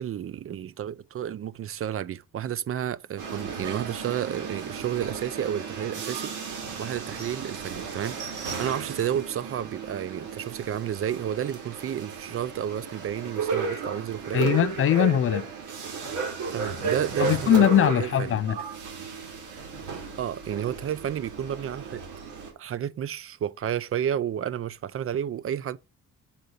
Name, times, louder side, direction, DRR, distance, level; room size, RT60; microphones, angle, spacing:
voice 1, 0.0-14.4 16.5-17.7 18.0-18.4 20.2-22.0 22.6-25.8, right 10 dB, 45° right, 0.6 m, -31 dB
sound 1, 3.2-22.5, right 5 dB, 80° right, 2.7 m, -34 dB
voice 2, 14.3-15.5 17.2-18.6, left 11 dB, 45° left, 0.5 m, -21 dB
7.2 x 3.9 x 5.2 m
cardioid pair, 90°, 30 cm